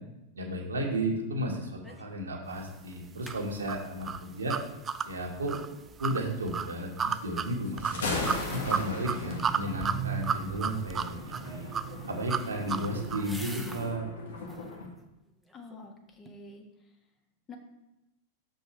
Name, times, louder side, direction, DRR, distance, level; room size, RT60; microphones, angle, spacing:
voice 1, 0.3-4.6 5.0-5.6 6.0-8.0 8.5-11.7 12.1-14.1, right 1 dB, 80° right, 0 dB, 1.6 m, -33 dB
sound 1, 1.8-2.2 2.5-2.6 2.9-3.4 7.9-9.1 9.5-10.0 12.0-14.0 14.4-14.8 15.3-15.9 16.3-16.4, right 1 dB, ahead, 0.9 m, -48 dB
sound 2, 3.3-13.3, right 7 dB, 25° right, 0.3 m, -33 dB
Thunder, 7.7-14.9, left 3 dB, 70° left, 1.6 m, -38 dB
voice 2, 15.5-16.7 17.5-17.6, left 3 dB, 25° left, 3 dB, 1.3 m, -47 dB
6.8 x 5.4 x 4.5 m, 0.93 s
figure-of-eight pair, 95°, 0 cm